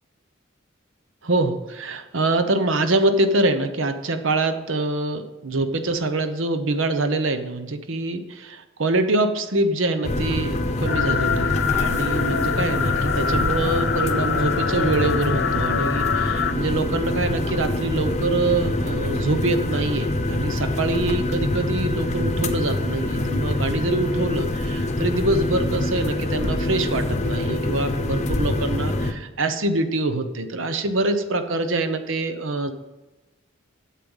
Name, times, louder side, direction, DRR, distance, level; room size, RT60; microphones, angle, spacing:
voice 1, 1.2-32.7, right 2 dB, 75° right, 9 dB, 0.9 m, -25 dB
sound 1, 10.0-29.1, left 1 dB, 35° left, 0.8 m, -25 dB
sound 2, 10.9-16.5, left 7 dB, 65° left, 0.5 m, -25 dB
8.4 x 7.6 x 5.6 m, 1.1 s
head